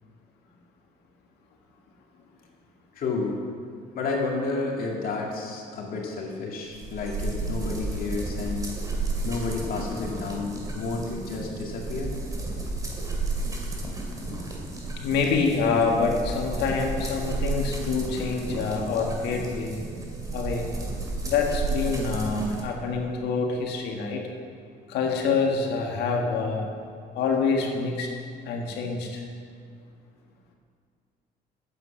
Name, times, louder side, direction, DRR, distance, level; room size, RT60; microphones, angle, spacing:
voice 1, 2.9-3.4 3.9-8.7 9.2-12.2, left 3 dB, 60° left, -1 dB, 2.2 m, -31 dB
sound 1, 6.7-22.6, right 2 dB, 20° right, 2.2 m, -32 dB
voice 2, 15.0-19.8 20.3-20.7 21.2-24.2 24.9-26.7 27.2-28.1 28.4-29.2, left 4 dB, 80° left, 1 dB, 1.7 m, -26 dB
9.3 x 7.7 x 7.2 m, 2.3 s
cardioid pair, 110°, 17 cm